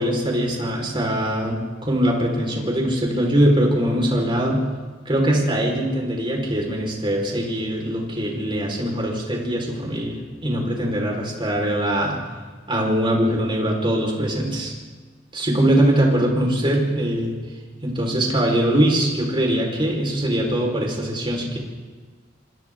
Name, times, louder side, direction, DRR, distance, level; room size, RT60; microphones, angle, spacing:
voice 1, 0.0-4.6 5.0-12.2 12.7-14.7 15.3-17.4 17.8-21.6, right 1 dB, 25° right, -1 dB, 4.8 m, -22 dB
27.5 x 26.0 x 3.8 m, 1.4 s
head